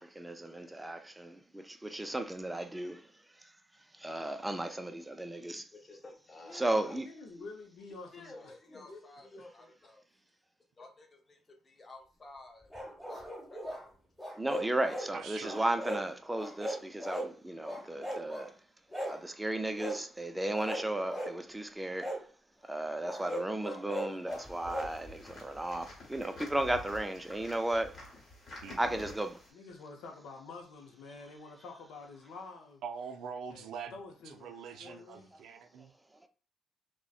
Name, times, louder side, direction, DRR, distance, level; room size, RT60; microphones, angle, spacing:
voice 1, 0.0-3.5 3.9-5.7 6.5-7.1 14.4-18.6 19.1-22.2 22.6-28.0 28.8-29.4 35.8-35.9 36.2-36.3, right 1 dB, 10° right, 0.4 m, -35 dB
voice 2, 5.4-7.0 7.4-7.5 8.1-10.0 10.7-13.2 13.5-14.0, left 2 dB, 30° left, 0.7 m, -52 dB
voice 3, 6.4-8.5 29.5-32.8 33.5-35.3, left 3 dB, 80° left, 0.5 m, -48 dB
sound 1, 12.7-13.8 14.2-15.1 15.4-16.0 16.3-17.3 17.6-18.5 18.9-19.2 19.8-20.0 20.5-21.3 22.0-22.2 23.0-24.9, equal, 10° left, 0.9 m, -38 dB
voice 4, 15.1-15.7 28.6-29.1 32.8-34.0 34.3-35.9, right 6 dB, 75° right, 0.4 m, -44 dB
sound 2, 24.3-29.5, left 1 dB, 45° left, 1.1 m, -49 dB
2.5 x 2.1 x 2.3 m
cardioid pair, 90°, 0 cm